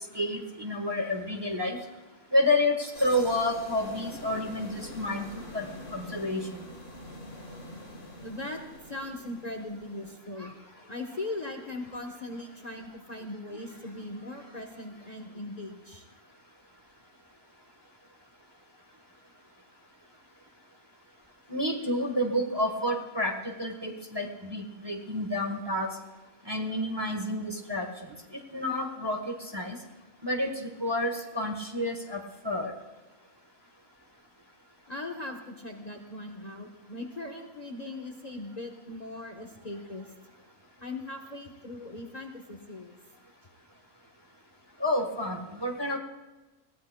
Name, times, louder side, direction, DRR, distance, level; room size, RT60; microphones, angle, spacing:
voice 1, 0.1-1.8 2.3-5.7 5.9-6.7 21.5-26.0 26.5-27.9 28.3-29.8 30.2-32.7 44.8-46.0, left 1 dB, 20° right, 2 dB, 1.2 m, -29 dB
sound 1, 2.9-10.2, left 1 dB, 70° left, 3.4 m, -45 dB
voice 2, 8.2-16.1 34.9-40.1 40.8-43.0, left 2 dB, 35° left, 3 dB, 1.0 m, -39 dB
21.0 x 16.0 x 2.2 m, 1.2 s
omnidirectional pair, 1.4 m